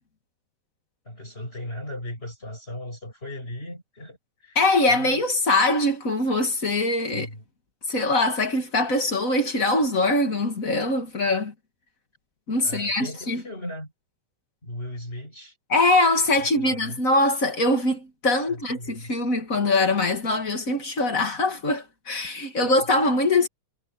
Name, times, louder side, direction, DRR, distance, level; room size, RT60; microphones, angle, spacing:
voice 1, 1.0-4.6 4.9-5.3 7.1-7.4 12.6-13.9 14.6-15.6 16.4-17.0 18.5-19.2 22.5-22.9, left 1 dB, 15° left, 6.8 m, -37 dB
voice 2, 4.6-7.3 7.9-11.5 12.5-13.4 15.7-23.5, left 2 dB, 30° left, 1.7 m, -22 dB
omnidirectional pair, 4.7 m